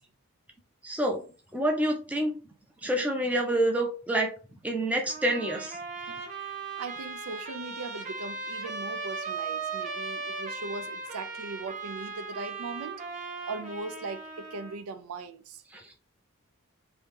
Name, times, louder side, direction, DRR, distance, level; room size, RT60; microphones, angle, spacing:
voice 1, 0.8-1.2 1.5-2.3 2.8-5.8 15.7-15.9, right 1 dB, 5° right, 0.5 m, -28 dB
Trumpet, 5.1-14.8, right 4 dB, 35° right, 0.9 m, -37 dB
voice 2, 6.1-13.0 13.5-15.6, right 3 dB, 85° right, 0.4 m, -39 dB
2.8 x 2.7 x 3.6 m
head